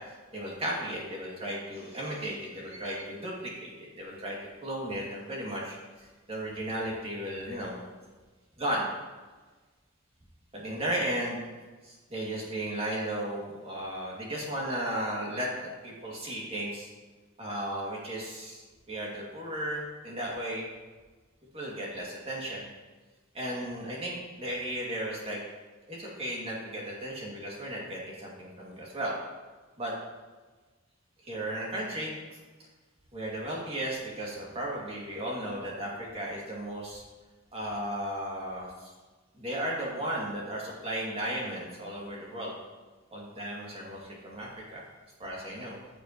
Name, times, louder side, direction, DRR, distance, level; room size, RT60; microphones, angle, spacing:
voice 1, 0.3-4.4 4.6-5.8 6.3-7.8 8.6-8.9 10.5-11.4 11.8-16.9 17.4-18.6 18.9-20.7 21.5-22.6 23.3-25.4 25.9-29.1 29.8-29.9 31.2-32.1 33.1-37.0 37.5-38.7 39.4-42.5 43.1-44.8 45.2-45.8, right 1 dB, 30° right, -4 dB, 2.4 m, -35 dB
14.5 x 7.1 x 3.0 m, 1.3 s
head